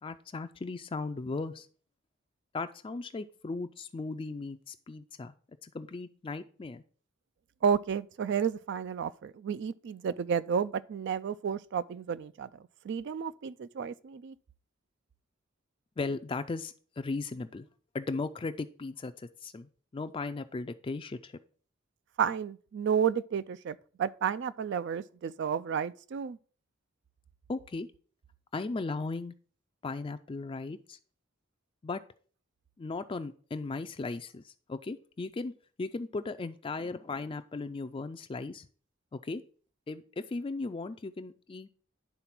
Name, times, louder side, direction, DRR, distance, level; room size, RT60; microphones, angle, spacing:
voice 1, 0.0-1.7 2.5-5.3 5.6-6.8 16.0-17.7 17.9-21.3 27.5-27.9 28.5-29.3 29.8-31.0 31.8-32.0 32.8-35.5 35.8-38.7 39.1-39.4 39.9-41.7, left 3 dB, 25° left, 0.4 m, -37 dB
voice 2, 7.6-14.3 22.2-26.4, right 7 dB, 60° right, 0.3 m, -31 dB
10.5 x 3.9 x 5.9 m
head